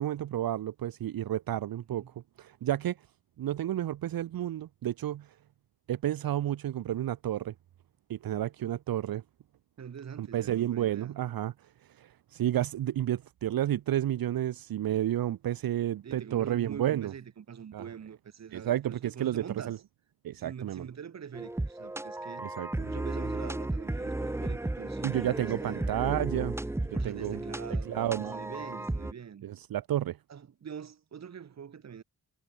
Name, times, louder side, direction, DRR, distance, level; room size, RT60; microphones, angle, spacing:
voice 1, 0.0-2.0 2.4-3.0 3.4-5.3 5.9-7.5 8.1-9.2 10.2-11.5 11.9-17.1 17.7-17.8 18.5-19.8 20.2-20.9 22.4-22.9 25.0-26.6 26.9-27.4 27.9-28.4 29.4-30.2, right 12 dB, 75° right, 0.9 m, -31 dB
voice 2, 1.7-2.1 9.8-11.1 16.0-19.7 20.3-22.5 22.8-25.9 26.9-29.5 30.3-32.0, right 7 dB, 50° right, 2.1 m, -44 dB
sound 1, 21.3-29.1, right 2 dB, 5° right, 0.7 m, -34 dB
wide cardioid pair, 175°, 36 cm